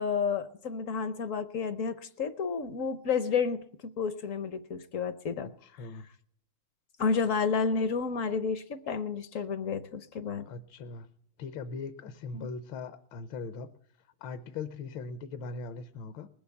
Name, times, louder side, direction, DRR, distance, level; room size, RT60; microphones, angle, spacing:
voice 1, 0.0-3.6 4.0-5.5 7.0-10.5 12.3-12.5, left 5 dB, 60° left, 12 dB, 0.9 m, -30 dB
voice 2, 5.6-6.1 10.5-11.1 11.4-13.7 14.0-16.3, left 4 dB, 75° left, 11 dB, 1.5 m, -40 dB
20.0 x 7.0 x 8.5 m, 0.66 s
omnidirectional pair, 2.2 m